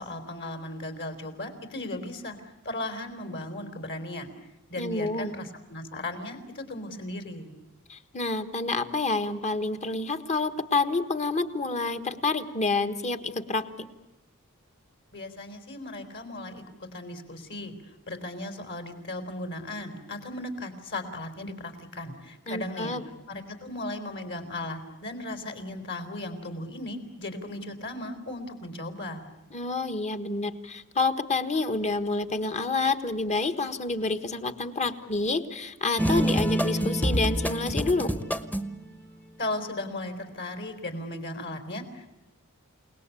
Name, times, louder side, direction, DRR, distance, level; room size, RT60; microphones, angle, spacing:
voice 1, 0.0-4.3 4.7-7.5 15.1-16.6 16.9-17.7 18.1-23.0 23.3-29.3 39.4-42.2, left 1 dB, 55° left, 7 dB, 4.2 m, -36 dB
voice 2, 4.8-5.4 7.9-13.9 22.5-23.0 29.5-38.1, left 3 dB, 30° left, 10 dB, 1.5 m, -28 dB
sound 1, 36.0-38.8, right 1 dB, 10° left, 1.1 m, -26 dB
29.5 x 19.0 x 8.6 m, 1.0 s
head